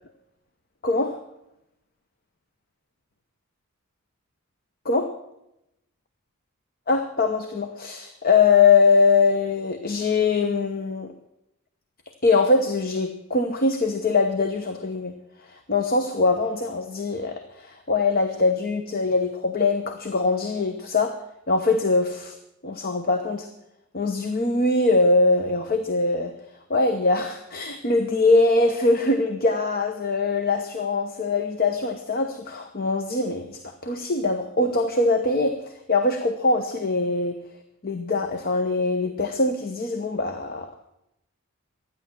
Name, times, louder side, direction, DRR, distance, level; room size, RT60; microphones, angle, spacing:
voice 1, 0.8-1.2 4.8-5.1 6.9-11.1 12.2-15.1 15.4-21.2 21.5-22.4 22.6-23.5 23.9-26.3 26.7-37.4 37.8-40.7, left 3 dB, 45° left, 6 dB, 1.0 m, -22 dB
13.5 x 9.9 x 7.4 m, 0.86 s
head